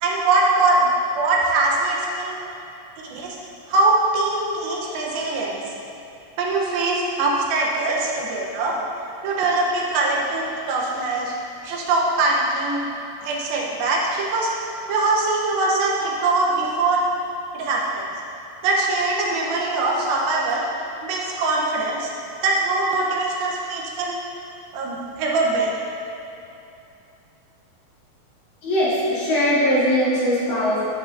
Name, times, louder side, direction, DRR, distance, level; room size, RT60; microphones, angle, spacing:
voice 1, 0.0-2.4 3.1-3.4 3.7-5.6 6.4-8.7 9.2-11.4 11.6-12.9 13.2-14.5 14.9-17.0 17.5-18.0 18.6-20.6 21.0-22.1 22.4-24.2 24.7-25.7, right 2 dB, 80° right, -3 dB, 2.7 m, -22 dB
voice 2, 28.6-30.8, equal, 55° left, -10 dB, 3.0 m, -20 dB
10.0 x 7.9 x 2.6 m, 2.8 s
omnidirectional pair, 4.2 m